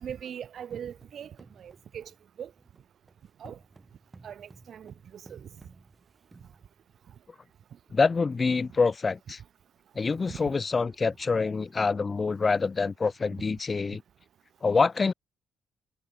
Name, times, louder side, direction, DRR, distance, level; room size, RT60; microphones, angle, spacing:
voice 1, 0.0-2.1 2.4-2.5 3.4-3.6 4.2-5.5 10.3-10.4, right 9 dB, 60° right, 2.2 m, -41 dB
sound 1, 0.7-7.2 7.9-8.0 8.3-8.5 8.9-9.0 9.6-9.7 9.9-10.3, right 3 dB, 25° right, 3.6 m, -56 dB
voice 2, 7.9-9.4 10.0-14.0 14.6-15.1, left 4 dB, 30° left, 0.4 m, -26 dB
cardioid pair, 90°, 0 cm